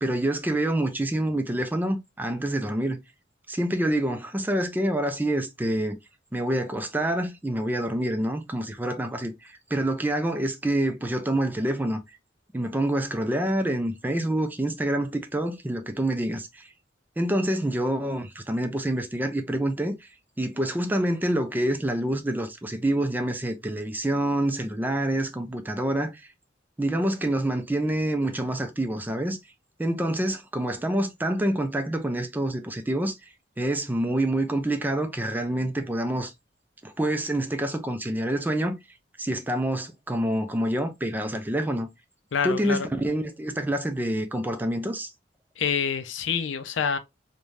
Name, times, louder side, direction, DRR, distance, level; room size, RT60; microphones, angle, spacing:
voice 1, 0.0-3.0 3.5-6.0 6.3-12.0 12.5-16.7 17.2-20.1 20.4-26.3 26.8-29.4 29.8-33.1 33.6-36.3 36.8-38.8 39.2-41.9 42.4-45.1, right 1 dB, 10° right, 0.4 m, -27 dB
voice 2, 42.3-42.9 45.6-47.0, left 6 dB, 85° left, 0.5 m, -27 dB
3.2 x 2.2 x 2.5 m
head